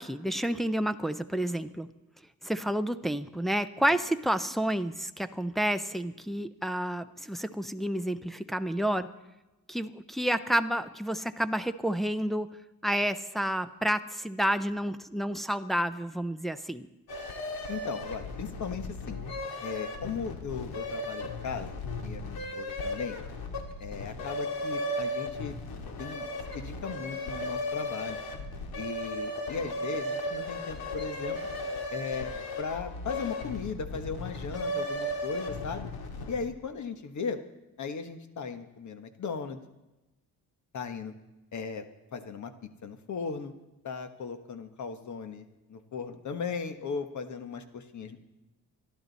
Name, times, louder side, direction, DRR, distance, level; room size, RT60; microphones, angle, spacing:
voice 1, 0.0-1.9 2.4-9.1 9.7-12.5 12.8-16.9, right 1 dB, ahead, 8 dB, 0.5 m, -30 dB
sound 1, 17.1-36.5, left 1 dB, 90° left, 2.2 m, -36 dB
voice 2, 17.7-19.2 19.6-21.7 22.0-23.2 23.8-25.6 26.0-28.2 28.8-31.4 31.9-35.9 36.3-37.4 37.8-39.6 40.7-41.1 41.5-41.8 42.1-43.5 43.8-48.2, left 5 dB, 55° left, 8 dB, 1.4 m, -37 dB
27.0 x 11.5 x 4.1 m, 1.0 s
wide cardioid pair, 155°, 36 cm